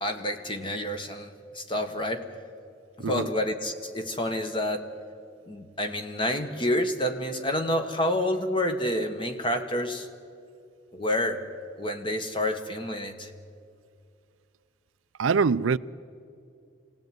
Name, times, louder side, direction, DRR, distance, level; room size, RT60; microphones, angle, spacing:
voice 1, 0.0-2.3 3.0-4.9 5.5-10.1 10.9-11.4 11.8-13.3, left 1 dB, 25° left, 1.6 m, -29 dB
voice 2, 15.2-15.8, right 5 dB, 85° right, 0.5 m, -23 dB
25.0 x 18.0 x 9.4 m
head